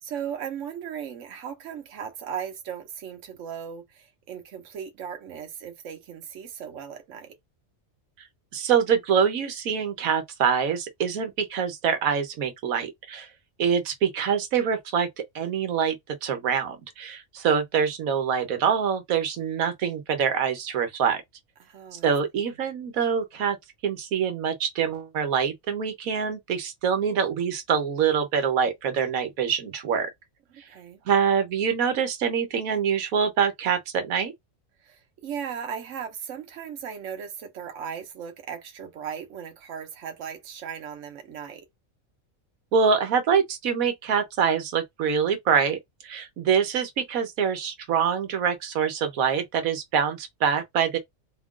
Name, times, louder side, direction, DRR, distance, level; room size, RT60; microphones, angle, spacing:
voice 1, 0.0-7.4 21.6-22.1 30.5-31.0 34.8-41.7, right 8 dB, 65° right, 1.2 m, -37 dB
voice 2, 8.5-13.3 13.6-15.1 15.3-21.2 21.9-23.6 23.8-30.1 31.1-34.3 42.7-51.0, right 7 dB, 85° right, 1.3 m, -25 dB
4.2 x 2.4 x 3.7 m
omnidirectional pair, 1.4 m